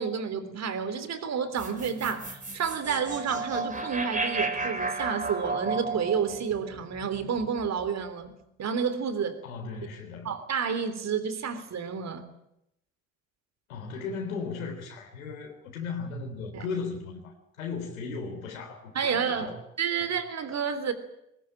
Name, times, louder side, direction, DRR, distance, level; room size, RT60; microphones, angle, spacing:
voice 1, 0.0-8.3 8.6-9.4 10.3-12.3 16.5-16.6 19.0-20.9, right 6 dB, 40° right, 11 dB, 3.4 m, -30 dB
sound 1, 1.6-7.9, right 3 dB, 20° right, 4.7 m, -33 dB
voice 2, 9.4-10.3 13.7-19.6, left 4 dB, 75° left, 2 dB, 3.7 m, -36 dB
21.0 x 21.0 x 8.9 m, 0.83 s
figure-of-eight pair, 65°, 41 cm